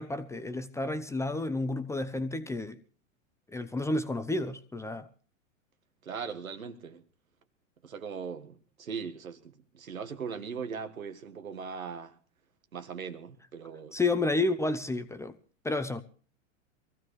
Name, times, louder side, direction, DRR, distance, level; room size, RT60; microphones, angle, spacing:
voice 1, 0.0-2.8 3.5-5.1 13.9-15.4 15.6-16.0, left 2 dB, 5° left, 0.7 m, -31 dB
voice 2, 6.0-7.0 7.8-12.2 12.7-14.0, right 6 dB, 90° right, 1.6 m, -39 dB
23.5 x 15.0 x 3.2 m
hypercardioid pair, 105°, 40 cm